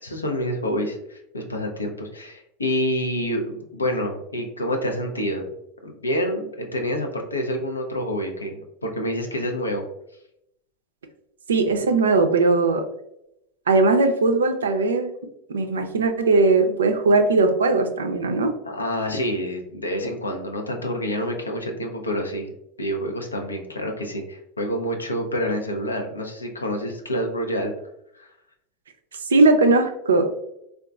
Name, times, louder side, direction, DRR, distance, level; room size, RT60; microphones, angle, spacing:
voice 1, 0.0-5.5 5.8-9.8 18.6-22.5 22.8-27.7 28.1-28.3, equal, 90° left, 3 dB, 0.5 m, -27 dB
voice 2, 11.5-12.8 13.7-15.1 15.5-18.5 29.3-30.3, right 3 dB, 80° right, 6 dB, 0.4 m, -19 dB
3.8 x 2.3 x 2.3 m, 0.79 s
hypercardioid pair, 85°, 0 cm